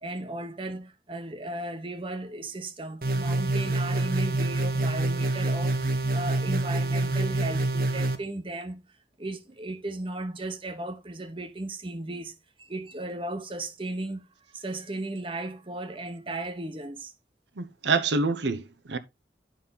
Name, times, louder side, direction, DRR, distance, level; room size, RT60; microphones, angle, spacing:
voice 1, 0.0-8.8 9.2-14.3 14.5-17.1, right 2 dB, 30° right, 1.0 m, -36 dB
sound 1, 3.0-8.2, right 2 dB, 50° right, 1.1 m, -26 dB
voice 2, 17.6-19.0, right 4 dB, 85° right, 0.9 m, -26 dB
9.3 x 5.6 x 4.0 m
head